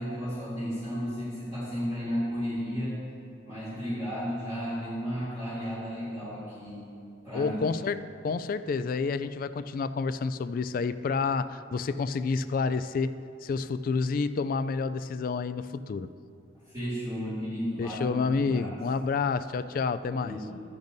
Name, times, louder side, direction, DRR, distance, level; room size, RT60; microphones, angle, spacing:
voice 1, 0.0-3.0 3.4-6.8 7.2-7.7 16.7-18.7 20.1-20.6, equal, 20° right, -15 dB, 2.7 m, -33 dB
voice 2, 7.3-16.1 17.8-20.4, left 4 dB, 50° left, 12 dB, 0.3 m, -29 dB
13.5 x 10.5 x 2.7 m, 2.5 s
head